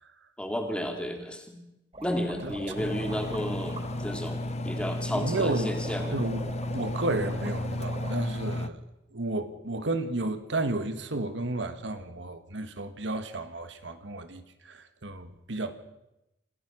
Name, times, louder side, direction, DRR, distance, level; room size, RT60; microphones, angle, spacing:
voice 1, 0.4-1.6 2.0-6.2, equal, 5° left, 2.9 m, -32 dB
sound 1, 1.9-8.1, right 1 dB, 35° right, 6.7 m, -42 dB
Engine, 2.8-8.7, left 1 dB, 35° left, 1.0 m, -33 dB
voice 2, 5.1-5.7 6.1-8.8 9.1-15.7, right 2 dB, 70° right, 1.6 m, -32 dB
28.0 x 15.5 x 6.2 m
head